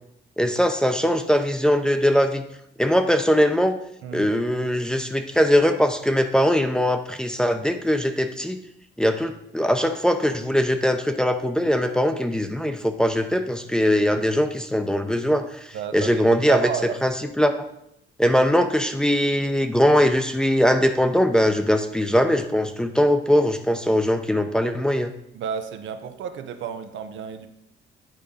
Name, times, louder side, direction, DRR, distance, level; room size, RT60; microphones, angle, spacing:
voice 1, 0.4-2.4 2.8-3.8 4.1-8.6 9.0-16.7 17.0-17.5 18.2-25.1, equal, 5° left, 6 dB, 0.7 m, -21 dB
voice 2, 4.0-4.3 15.7-17.0 25.3-27.5, right 8 dB, 75° right, 8 dB, 0.8 m, -31 dB
9.0 x 3.7 x 5.4 m, 0.78 s
cardioid pair, 90°, 20 cm